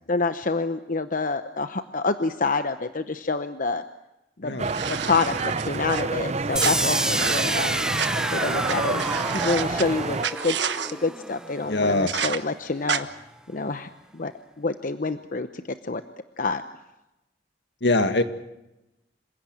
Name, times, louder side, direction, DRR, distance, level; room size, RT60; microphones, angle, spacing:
voice 1, 0.1-3.8 4.4-4.6 4.9-7.9 8.3-9.1 9.3-10.2 10.4-10.6 10.9-13.1 13.5-14.3 14.6-16.0 16.4-16.6, left 3 dB, 50° left, 10 dB, 0.9 m, -27 dB
sound 1, 4.6-10.2, right 3 dB, 40° right, 0.8 m, -29 dB
sound 2, 4.6-6.0 6.6-8.1 8.7-8.8 9.0-9.8 10.2-10.9 12.1-12.4 12.9-13.0, right 7 dB, 85° right, 1.3 m, -30 dB
sound 3, 6.6-12.5, right 1 dB, 5° right, 0.8 m, -29 dB
voice 2, 11.6-12.3 17.8-18.2, left 2 dB, 75° left, 9 dB, 2.0 m, -23 dB
27.0 x 16.5 x 9.1 m, 0.94 s
head